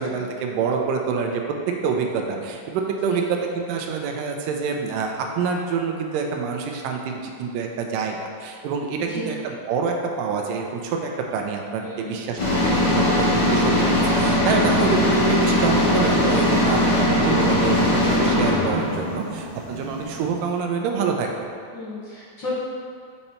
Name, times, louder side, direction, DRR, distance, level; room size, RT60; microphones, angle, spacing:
voice 1, 0.0-1.6 1.8-21.3, right 5 dB, 80° right, 2 dB, 2.1 m, -26 dB
voice 2, 11.8-12.2 16.4-16.7 21.7-22.6, left 3 dB, 85° left, -10 dB, 1.0 m, -33 dB
sound 1, 12.4-20.3, left 1 dB, 45° left, 2.1 m, -20 dB
6.8 x 4.3 x 4.2 m, 2.2 s
omnidirectional pair, 4.2 m